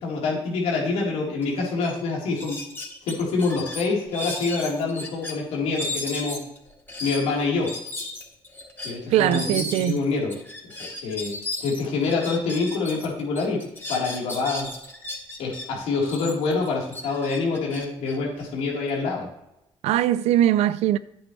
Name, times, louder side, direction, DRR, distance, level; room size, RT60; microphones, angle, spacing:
voice 1, 0.0-2.6 3.0-6.4 7.0-7.7 8.8-10.3 11.0-11.3 11.6-13.6 13.9-14.7 15.4-19.3, left 4 dB, 90° left, 3.9 m, -26 dB
sound 1, 1.4-1.5 1.8-2.0 2.4-5.3 5.7-13.1 13.3-15.6 16.0-18.9, left 2 dB, 20° left, 4.2 m, -35 dB
voice 2, 9.1-10.0 19.8-21.0, right 12 dB, 90° right, 0.5 m, -21 dB
11.5 x 8.9 x 3.3 m
supercardioid pair, 70°, 11 cm